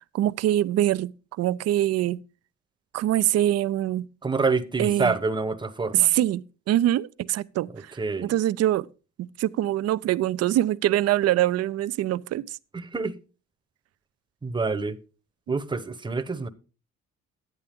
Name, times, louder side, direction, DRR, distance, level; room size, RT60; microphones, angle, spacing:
voice 1, 0.1-1.1 1.4-2.2 2.9-4.1 4.8-5.1 5.9-8.9 9.2-12.6, right 13 dB, 60° right, 0.5 m, -24 dB
voice 2, 4.2-6.1 8.0-8.3 12.7-13.2 14.4-15.0 15.5-16.5, right 4 dB, 15° right, 0.9 m, -27 dB
11.0 x 9.2 x 3.6 m
cardioid pair, 80°, 29 cm